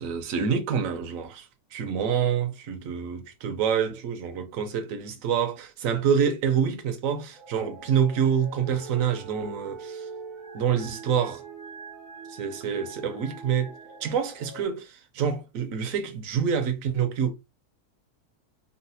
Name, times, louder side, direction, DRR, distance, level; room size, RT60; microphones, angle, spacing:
voice 1, 0.0-10.1 10.5-11.4 12.3-13.7 14.0-17.3, right 7 dB, 65° right, 1.0 m, -27 dB
sound 1, 7.3-14.6, right 4 dB, 45° right, 0.6 m, -43 dB
3.9 x 2.1 x 2.7 m
omnidirectional pair, 1.7 m